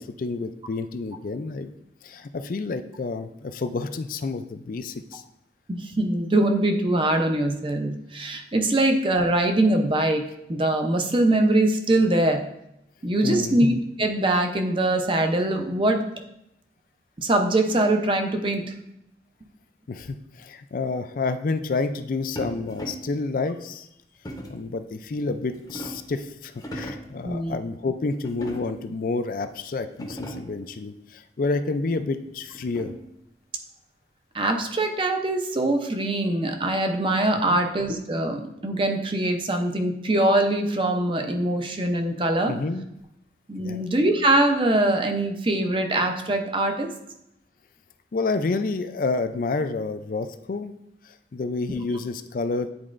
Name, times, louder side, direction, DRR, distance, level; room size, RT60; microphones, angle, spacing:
voice 1, 0.0-1.7 2.0-5.2 13.2-13.6 19.9-23.9 24.5-32.9 37.5-37.6 42.5-42.9 43.6-43.8 48.1-50.7 51.0-52.7, left 3 dB, 50° left, 10 dB, 0.4 m, -29 dB
voice 2, 5.7-12.5 13.0-13.7 14.0-16.0 17.2-18.7 27.2-27.6 34.3-42.5 43.5-46.9, right 1 dB, 30° right, 5 dB, 0.6 m, -23 dB
sound 1, 22.4-23.2 24.2-24.7 25.3-26.2 26.5-27.2 28.2-28.9 29.5-29.6 29.9-30.6 32.0-33.1, right 1 dB, 20° left, 0.7 m, -38 dB
9.5 x 4.2 x 2.5 m, 0.82 s
head